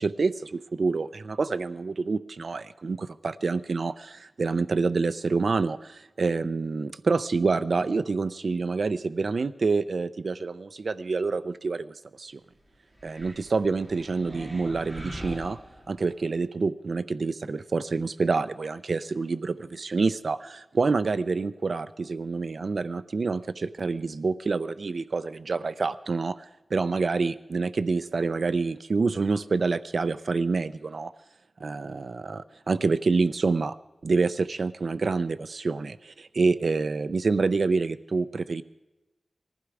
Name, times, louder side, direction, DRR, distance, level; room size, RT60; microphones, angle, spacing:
voice 1, 0.0-12.4 13.0-15.6 15.9-26.5 26.7-31.1 31.6-33.8 34.0-38.6, right 4 dB, 65° right, 12 dB, 0.5 m, -27 dB
sound 1, 12.9-16.3, equal, 15° right, 3.1 m, -42 dB
19.0 x 15.0 x 4.8 m, 1.0 s
wide cardioid pair, 110°, 0 cm